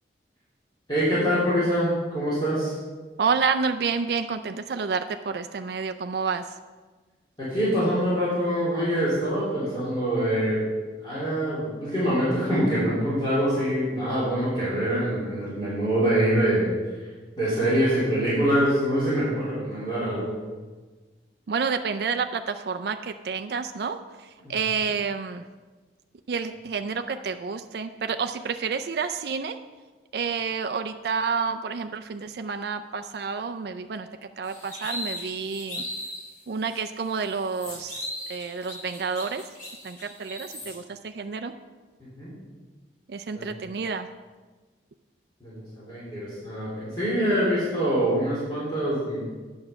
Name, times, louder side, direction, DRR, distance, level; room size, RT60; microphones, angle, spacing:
voice 1, 0.9-2.7 7.4-10.6 11.0-16.7 17.4-20.4 24.4-24.5 42.2-42.3 43.3-43.5 45.4-49.5, equal, 25° left, -11 dB, 3.0 m, -25 dB
voice 2, 3.2-6.5 21.5-25.4 26.3-29.6 30.1-35.8 36.5-39.4 39.8-41.5 43.1-44.1, right 5 dB, 65° right, 7 dB, 0.4 m, -29 dB
sound 1, 34.4-36.3 36.7-36.8 37.2-40.7, left 1 dB, 45° left, 3.3 m, -37 dB
8.8 x 6.2 x 5.9 m, 1.3 s
head